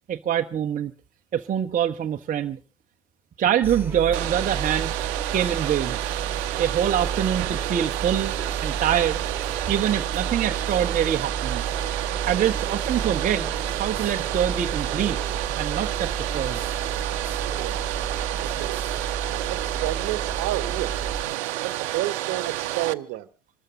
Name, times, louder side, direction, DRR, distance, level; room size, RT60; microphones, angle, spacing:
voice 1, 0.1-0.9 1.3-2.6 3.4-4.9 5.3-6.0 6.6-8.3 8.6-9.2 9.7-11.6 12.2-13.5 13.7-15.2 15.6-16.6, right 9 dB, 20° right, 0.8 m, -25 dB
sound 1, 3.6-21.2, right 5 dB, 5° right, 2.7 m, -32 dB
Domestic sounds home sounds, 4.1-22.9, right 16 dB, 60° right, 0.7 m, -30 dB
voice 2, 17.5-17.9 18.4-19.0 19.5-21.0 21.6-23.3, right 16 dB, 45° right, 1.1 m, -31 dB
25.5 x 13.5 x 3.7 m
figure-of-eight pair, 80°, 37 cm